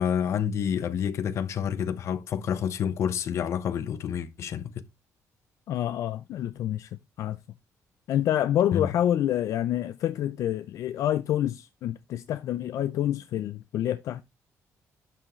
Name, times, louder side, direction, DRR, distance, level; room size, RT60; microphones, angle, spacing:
voice 1, 0.0-4.8 8.7-8.9, left 8 dB, 55° left, 0.9 m, -28 dB
voice 2, 5.7-6.9 7.2-7.4 8.1-14.2, left 11 dB, 75° left, 0.5 m, -27 dB
11.5 x 6.1 x 3.1 m
cardioid pair, 145°, 6 cm